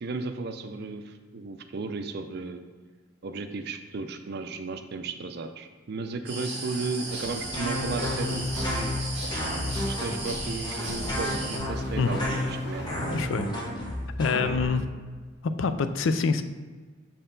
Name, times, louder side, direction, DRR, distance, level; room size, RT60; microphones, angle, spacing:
voice 1, 0.0-2.6 3.2-9.1 9.8-12.9, right 3 dB, 55° right, 8 dB, 0.5 m, -35 dB
sound 1, 6.3-11.6, right 2 dB, 30° right, 1.9 m, -36 dB
sound 2, 7.0-13.3, equal, 60° left, 1.0 m, -42 dB
sound 3, 7.5-14.6, left 1 dB, 20° left, 1.2 m, -31 dB
voice 2, 13.1-13.5 14.2-14.9 15.4-16.4, left 4 dB, 75° left, 10 dB, 0.4 m, -25 dB
6.7 x 4.4 x 3.8 m, 1.4 s
head